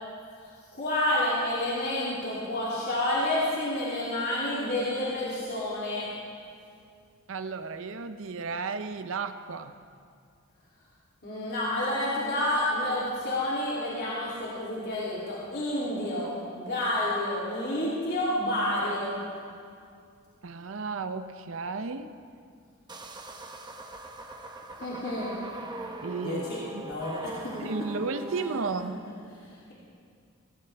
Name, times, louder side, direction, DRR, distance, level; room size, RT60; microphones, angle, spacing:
voice 1, 0.7-6.1 11.2-19.2 24.8-25.3 26.2-26.6 26.8-27.5, left 1 dB, 50° left, -8 dB, 2.9 m, -29 dB
voice 2, 7.3-9.7 20.4-22.1 26.0-26.9 27.6-29.0, right 4 dB, 65° right, 9 dB, 0.6 m, -33 dB
sound 1, 22.9-28.6, right 2 dB, 20° right, 0.9 m, -41 dB
17.5 x 17.5 x 3.4 m, 2.3 s
head